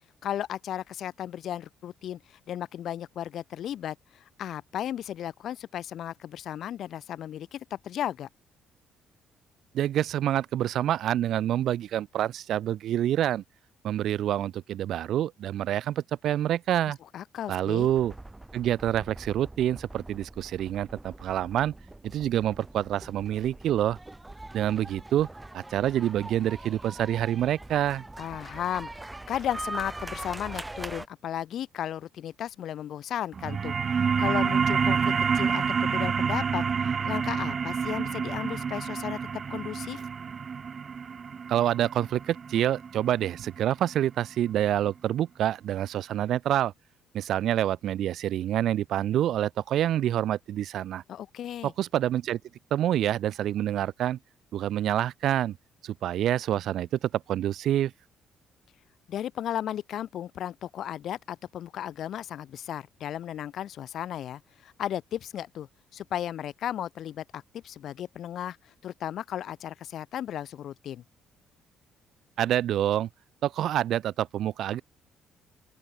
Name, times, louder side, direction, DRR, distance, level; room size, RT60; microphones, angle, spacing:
voice 1, 0.2-8.3 17.1-17.9 28.2-33.8 34.2-40.1 51.1-51.7 59.1-65.7 65.9-71.0, left 10 dB, 65° left, 3.3 m, -35 dB
voice 2, 9.7-13.4 13.8-17.0 17.5-18.1 18.5-21.7 22.1-24.0 24.5-25.3 25.5-28.0 41.5-46.7 47.1-51.0 51.6-52.4 52.7-54.2 54.5-55.6 55.8-57.9 72.4-73.1 73.4-74.8, right 11 dB, 65° right, 1.6 m, -27 dB
sound 1, 17.8-31.1, right 2 dB, 10° right, 7.1 m, -42 dB
sound 2, 33.3-44.4, right 6 dB, 40° right, 3.3 m, -28 dB
open air
cardioid pair, 105°, 0 cm